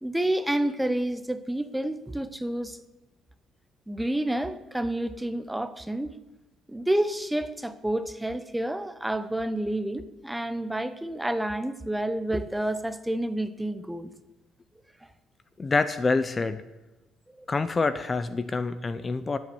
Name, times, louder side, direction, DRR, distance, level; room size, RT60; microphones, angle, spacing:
voice 1, 0.0-2.8 3.9-6.1 6.7-14.1 17.4-17.5, right 1 dB, 5° right, 12 dB, 0.7 m, -29 dB
voice 2, 15.6-16.6 17.5-19.4, left 3 dB, 25° left, 13 dB, 0.5 m, -26 dB
12.0 x 8.0 x 7.0 m, 1.1 s
cardioid pair, 95°, 0 cm